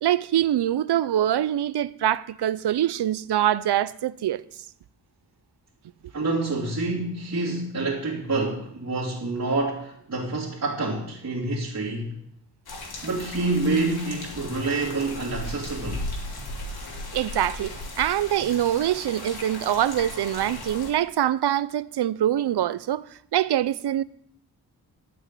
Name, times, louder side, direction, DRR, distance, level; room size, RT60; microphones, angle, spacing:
voice 1, 0.0-4.4 17.1-24.0, right 11 dB, 85° right, 0.6 m, -24 dB
voice 2, 6.1-12.2 13.0-16.0, right 3 dB, 45° right, 2.8 m, -27 dB
sound 1, 12.7-20.9, left 2 dB, 70° left, 2.8 m, -36 dB
12.5 x 6.3 x 9.0 m
wide cardioid pair, 155°, 39 cm